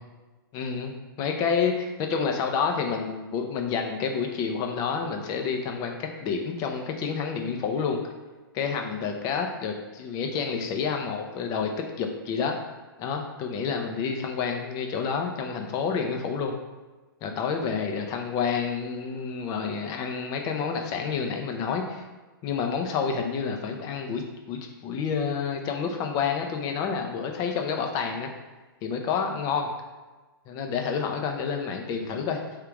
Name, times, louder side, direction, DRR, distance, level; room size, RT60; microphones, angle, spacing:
voice 1, 0.5-8.0 8.5-11.7 12.0-12.6 13.0-16.5 17.2-22.0 22.4-28.3 28.8-29.7 30.5-32.4, left 6 dB, 30° left, 3 dB, 0.6 m, -29 dB
3.6 x 2.8 x 4.7 m, 1.2 s
hypercardioid pair, 130°, 12 cm